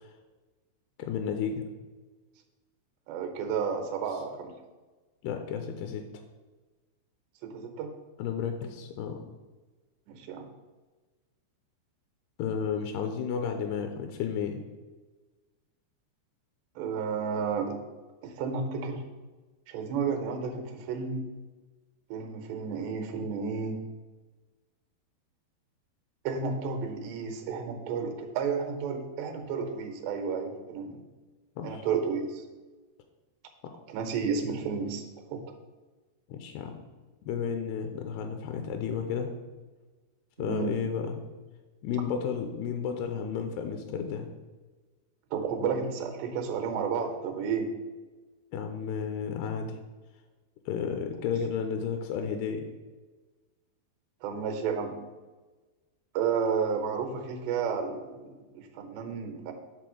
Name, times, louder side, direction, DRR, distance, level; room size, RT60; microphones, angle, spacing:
voice 1, 1.0-1.6 5.2-6.0 8.2-9.2 12.4-14.6 31.6-31.9 33.6-33.7 36.3-36.8 37.3-39.3 40.4-41.2 41.8-44.3 48.5-49.8 50.7-52.7, left 7 dB, 85° left, 5 dB, 2.5 m, -32 dB
voice 2, 3.1-4.5 7.4-7.9 10.1-10.5 16.8-17.8 18.2-19.0 19.7-21.2 22.1-23.8 26.2-31.0 31.6-32.4 33.9-35.0 35.3-35.4 40.4-40.8 45.3-47.7 54.2-55.0 56.1-58.3 58.5-59.5, right 6 dB, 85° right, 5 dB, 3.1 m, -32 dB
7.7 x 3.7 x 6.2 m, 1.3 s
omnidirectional pair, 4.8 m